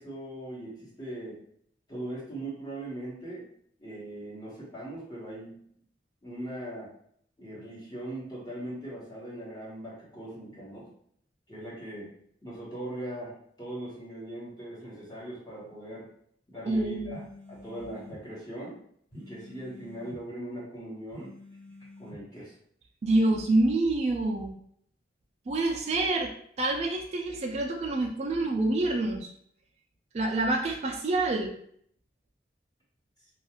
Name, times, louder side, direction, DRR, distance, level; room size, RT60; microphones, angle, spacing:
voice 1, 0.0-1.4 1.9-3.5 3.8-5.6 6.2-6.9 7.4-10.9 11.5-12.1 12.4-16.1 16.5-17.2 17.5-18.8 19.1-21.3 22.0-22.5 23.2-23.3, right 1 dB, 20° left, -7 dB, 1.1 m, -40 dB
voice 2, 16.7-17.3 23.0-24.6 25.5-26.3 26.6-29.3 30.1-31.6, right 2 dB, 35° right, 0 dB, 0.3 m, -27 dB
sound 1, 17.1-18.2 19.1-20.2 21.1-22.2, left 1 dB, 55° left, 1.2 m, -48 dB
2.4 x 2.4 x 2.9 m, 0.65 s
head